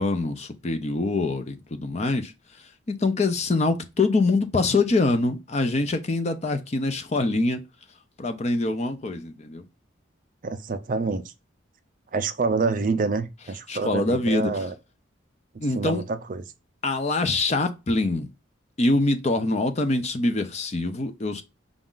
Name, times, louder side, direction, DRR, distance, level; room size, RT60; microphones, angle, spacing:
voice 1, 0.0-2.3 2.9-7.6 8.2-9.7 13.7-14.7 15.6-16.0 16.8-18.3 18.8-21.4, left 2 dB, 35° left, 0.5 m, -24 dB
voice 2, 10.4-11.3 12.1-14.7 15.7-16.4, right 4 dB, 40° right, 0.4 m, -27 dB
5.1 x 2.4 x 3.7 m
head